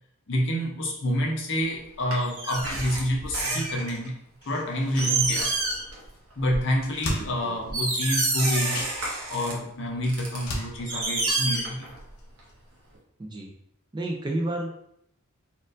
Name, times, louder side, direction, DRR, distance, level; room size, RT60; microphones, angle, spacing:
voice 1, 0.3-4.2 4.5-5.5 6.4-8.9 9.3-11.9, equal, 55° left, 0 dB, 0.7 m, -28 dB
sound 1, 2.1-4.1 4.6-4.7 5.0-6.0 6.3-6.6 7.2-7.3 7.7-9.5 10.0-12.1 12.4-12.5, right 3 dB, 85° right, 1.0 m, -28 dB
sound 2, 4.7-5.9 6.1-6.2 6.5-8.0 8.5-12.2 12.5-12.6, left 1 dB, 90° left, 0.8 m, -38 dB
voice 2, 7.2-7.5 13.2-13.5 13.9-14.7, right 1 dB, 20° right, 0 dB, 0.4 m, -31 dB
4.2 x 2.5 x 2.5 m, 0.73 s
head